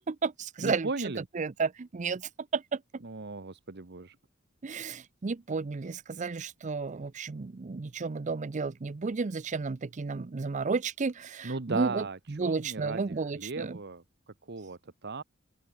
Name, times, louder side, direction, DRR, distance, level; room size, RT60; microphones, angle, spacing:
voice 1, 0.0-0.9 1.3-3.0 4.6-13.8, right 4 dB, 35° right, 0.5 m, -32 dB
voice 2, 0.6-1.2 3.0-4.2 11.4-14.0 14.5-15.2, right 3 dB, 55° right, 1.1 m, -36 dB
open air
head